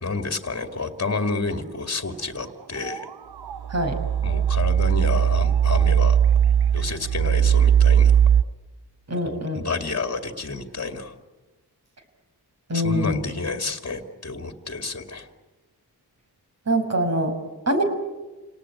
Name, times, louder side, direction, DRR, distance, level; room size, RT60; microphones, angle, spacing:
voice 1, 0.0-3.1 4.2-6.2 6.7-8.2 9.2-11.1 12.7-15.3, left 3 dB, 40° left, 6 dB, 2.3 m, -30 dB
sound 1, 2.8-3.1 3.4-8.4, right 9 dB, 70° right, 0.8 m, -19 dB
voice 2, 9.1-9.6 12.7-13.3 16.7-17.3 17.7-17.8, equal, 40° right, 5 dB, 5.6 m, -23 dB
28.5 x 19.0 x 9.8 m, 1.2 s
wide cardioid pair, 80°, 39 cm